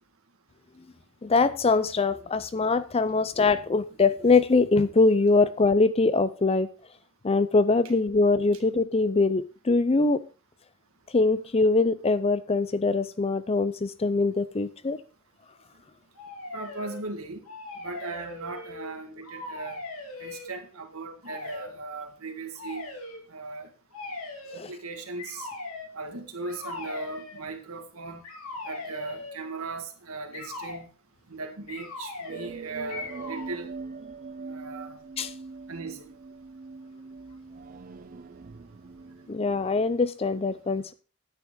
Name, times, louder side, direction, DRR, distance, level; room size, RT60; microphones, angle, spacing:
voice 1, 1.2-6.7 7.2-10.2 11.1-15.0 24.5-24.7 35.2-35.3 39.3-40.9, left 3 dB, 25° left, 0.5 m, -23 dB
sound 1, 16.1-17.0 17.4-18.9 19.2-20.5 21.2-21.7 22.5-23.2 23.9-24.6 25.2-25.9 26.4-27.4 28.2-29.4 30.3-30.8 31.7-32.5 32.9-33.5, left 2 dB, 80° left, 2.7 m, -39 dB
voice 2, 16.5-17.4 17.8-19.8 20.2-22.8 23.3-23.7 24.5-25.5 25.9-28.2 28.6-30.9 31.3-33.7 34.4-35.0 35.7-36.1, right 3 dB, 75° right, 1.8 m, -38 dB
sound 2, 32.3-40.0, right 4 dB, 40° right, 0.4 m, -42 dB
9.9 x 9.2 x 3.7 m
head